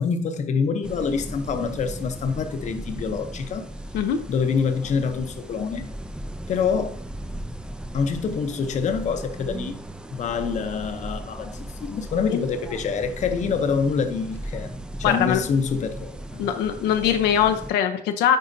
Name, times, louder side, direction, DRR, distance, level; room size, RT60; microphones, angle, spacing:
voice 1, 0.0-3.7 4.3-5.9 6.5-7.0 7.9-9.8 10.1-14.7 15.0-16.2, left 5 dB, 45° left, 0.7 m, -26 dB
sound 1, 0.8-17.7, right 1 dB, 5° right, 0.4 m, -37 dB
voice 2, 15.0-15.4 16.4-18.4, left 9 dB, 85° left, 0.6 m, -22 dB
9.1 x 4.1 x 2.7 m
cardioid pair, 110°, 17 cm